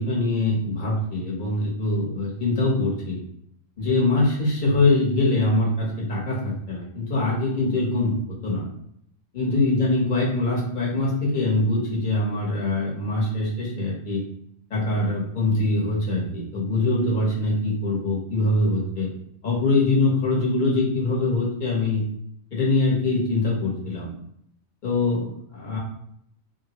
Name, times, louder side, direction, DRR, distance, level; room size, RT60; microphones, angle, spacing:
voice 1, 0.0-3.2 3.8-8.2 8.4-8.7 9.3-14.2 14.7-19.1 19.4-22.0 22.5-24.1 24.8-25.8, left 2 dB, 40° left, -5 dB, 1.1 m, -23 dB
3.2 x 2.2 x 2.8 m, 0.71 s
omnidirectional pair, 1.4 m